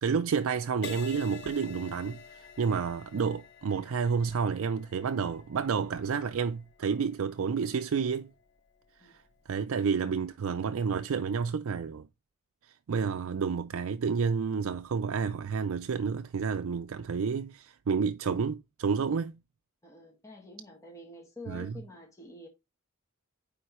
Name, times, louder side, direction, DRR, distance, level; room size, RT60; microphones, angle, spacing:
voice 1, 0.0-8.3 9.1-9.2 9.5-12.1 12.9-19.4 21.5-21.7, right 6 dB, 65° right, 0.4 m, -30 dB
Crash cymbal, 0.8-8.5 9.1-9.4, left 7 dB, 55° left, 0.7 m, -49 dB
voice 2, 19.8-22.5, left 1 dB, 15° left, 1.7 m, -48 dB
9.1 x 3.7 x 3.1 m
head